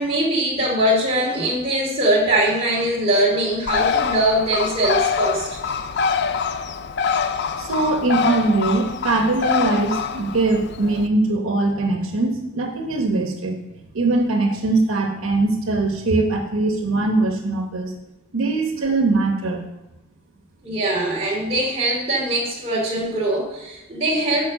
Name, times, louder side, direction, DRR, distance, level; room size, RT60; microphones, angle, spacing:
voice 1, 0.0-5.5 20.6-24.5, right 1 dB, 30° right, -4 dB, 2.6 m, -21 dB
Bird, 3.7-11.1, left 6 dB, 55° left, 0.4 m, -24 dB
voice 2, 7.6-13.6 13.9-17.9 18.3-19.6, right 2 dB, 85° right, 3 dB, 1.0 m, -21 dB
9.5 x 4.7 x 6.3 m, 0.94 s
head